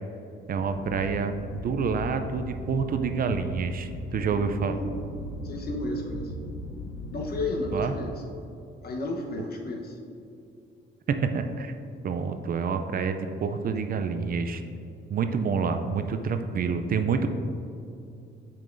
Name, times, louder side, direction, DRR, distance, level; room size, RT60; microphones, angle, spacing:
sound 1, 0.5-8.0, left 2 dB, 90° left, 0.7 m, -38 dB
voice 1, 0.5-4.8 7.7-7.9 11.1-11.7 12.0-14.6 15.1-17.3, right 5 dB, 45° right, 8 dB, 0.4 m, -28 dB
voice 2, 4.2-4.9 5.4-6.3 7.1-8.1 8.8-10.0, left 1 dB, 50° left, 1 dB, 1.0 m, -32 dB
7.4 x 5.5 x 2.6 m, 2.6 s
cardioid pair, 90°, 20 cm